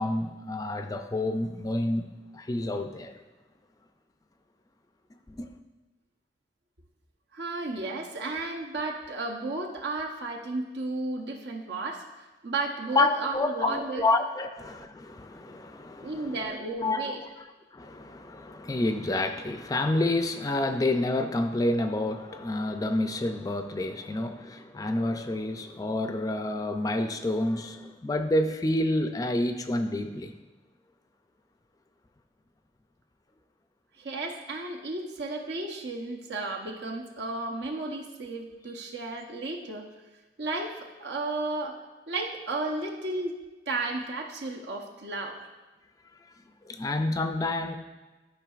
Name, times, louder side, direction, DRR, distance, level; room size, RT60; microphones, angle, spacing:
voice 1, 0.0-2.1 2.3-3.2 5.3-5.5 12.9-17.4 17.7-30.3 46.6-47.8, left 2 dB, 20° left, 7 dB, 0.4 m, -29 dB
voice 2, 7.3-14.1 16.0-17.2 34.0-39.9 40.4-43.4 43.7-45.4, right 2 dB, 75° right, 1 dB, 0.9 m, -33 dB
12.0 x 5.3 x 2.4 m, 1.2 s
head